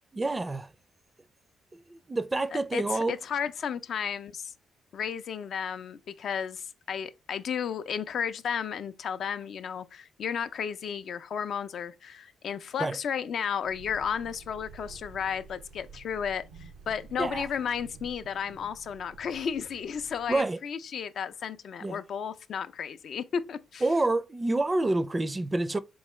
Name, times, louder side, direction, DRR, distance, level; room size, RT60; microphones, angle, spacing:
voice 1, 0.1-0.7 1.7-3.2 12.8-13.0 17.2-17.5 20.3-20.6 21.8-22.0 23.8-25.8, right 2 dB, 25° right, 0.4 m, -28 dB
voice 2, 2.7-4.5 4.9-23.8, left 7 dB, 65° left, 0.4 m, -33 dB
sound 1, 13.6-20.4, right 5 dB, 90° right, 0.5 m, -50 dB
3.8 x 3.6 x 3.1 m
supercardioid pair, 55°, 0 cm